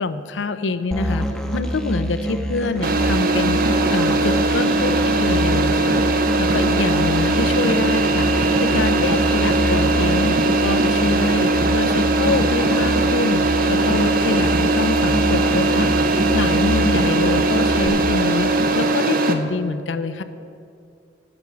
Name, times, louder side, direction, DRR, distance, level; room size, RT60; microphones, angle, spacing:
voice 1, 0.0-6.0 6.4-8.3 8.6-10.3 10.6-15.9 16.3-20.2, left 3 dB, 90° left, 12 dB, 0.5 m, -25 dB
Musical instrument, 0.9-17.9, equal, 5° left, 0.6 m, -26 dB
sound 1, 2.8-19.3, right 2 dB, 50° right, 0.7 m, -19 dB
8.6 x 6.0 x 8.3 m, 2.5 s
head